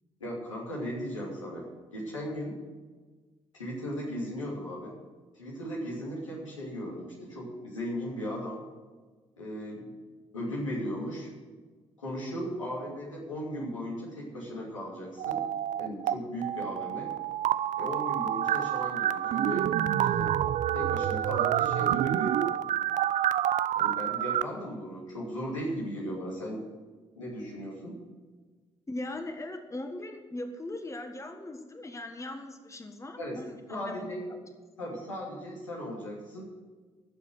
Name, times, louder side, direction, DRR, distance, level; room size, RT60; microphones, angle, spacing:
voice 1, 0.2-2.6 3.5-5.0 5.3-8.6 9.4-9.9 10.3-11.3 12.0-15.4 15.8-17.1 17.8-19.7 20.0-20.3 20.7-22.5 23.7-26.6 27.2-28.0 33.2-33.4 33.7-34.3 34.8-36.4, equal, 85° left, -5 dB, 2.8 m, -37 dB
sound 1, 15.2-16.1 16.4-24.4, right 11 dB, 50° right, 0.5 m, -28 dB
voice 2, 28.9-34.4, left 2 dB, 20° left, 6 dB, 1.5 m, -40 dB
14.5 x 7.3 x 8.1 m, 1.4 s
figure-of-eight pair, 45°, 16 cm